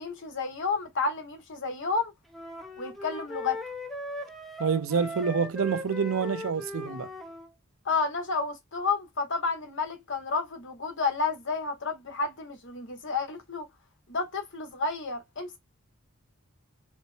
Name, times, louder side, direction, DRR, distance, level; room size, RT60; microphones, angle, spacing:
voice 1, 0.0-2.1 2.8-3.6 7.8-13.7 14.1-15.6, left 4 dB, 60° left, 1.1 m, -31 dB
sound 1, 2.3-7.5, left 1 dB, ahead, 0.6 m, -39 dB
voice 2, 4.6-7.1, right 6 dB, 70° right, 0.6 m, -27 dB
4.1 x 2.1 x 3.2 m
head